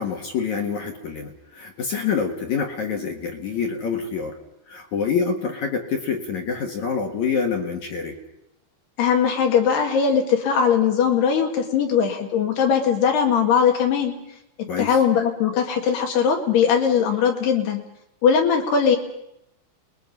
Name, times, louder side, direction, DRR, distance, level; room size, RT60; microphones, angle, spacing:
voice 1, 0.0-4.4 4.7-8.2 14.7-15.0, left 6 dB, 55° left, 3 dB, 2.5 m, -26 dB
voice 2, 9.0-14.1 14.8-17.8 18.2-19.0, left 7 dB, 70° left, 2 dB, 4.1 m, -20 dB
29.5 x 21.0 x 5.4 m, 0.83 s
omnidirectional pair, 5.0 m